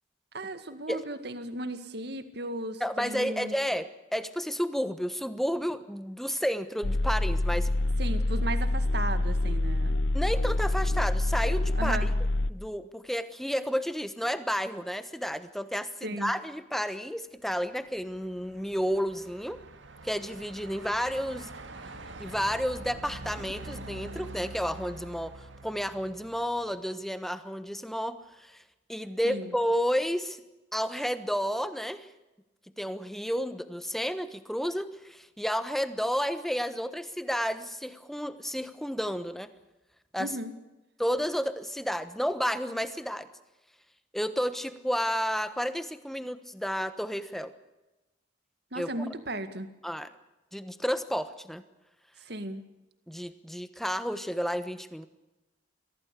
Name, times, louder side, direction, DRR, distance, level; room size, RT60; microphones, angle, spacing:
voice 1, 0.3-3.5 8.0-10.0 11.8-12.1 16.0-16.3 29.2-29.5 40.2-40.5 48.7-49.7 52.2-52.7, right 1 dB, 60° right, 10 dB, 2.0 m, -35 dB
voice 2, 2.8-7.7 10.1-12.1 12.5-19.6 20.0-21.5 22.2-28.6 28.9-30.4 30.7-32.1 32.8-39.5 40.1-40.3 41.0-43.3 44.1-47.5 48.7-48.9 49.8-50.1 50.5-51.6 53.1-55.1, equal, ahead, 11 dB, 1.2 m, -31 dB
sound 1, 6.8-12.5, left 1 dB, 80° left, 0.8 m, -26 dB
Truck, 17.6-27.0, right 2 dB, 90° right, 2.0 m, -45 dB
24.0 x 17.0 x 8.4 m, 1.0 s
head